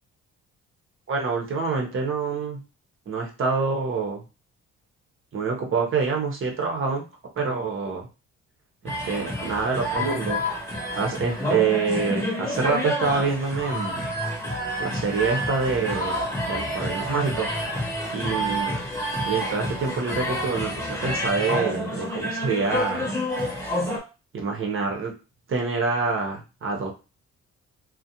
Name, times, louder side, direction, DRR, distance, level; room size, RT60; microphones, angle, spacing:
voice 1, 1.1-2.6 3.1-4.2 5.3-7.0 7.4-8.1 8.8-10.4 11.0-14.0 14.8-17.5 18.1-18.8 19.2-23.1 24.3-25.1 25.5-26.9, right 4 dB, 45° right, 1 dB, 0.7 m, -26 dB
sound 1, 8.9-24.0, equal, 10° left, 0.9 m, -29 dB
2.4 x 2.1 x 2.8 m, 0.30 s
cardioid pair, 90°, 30 cm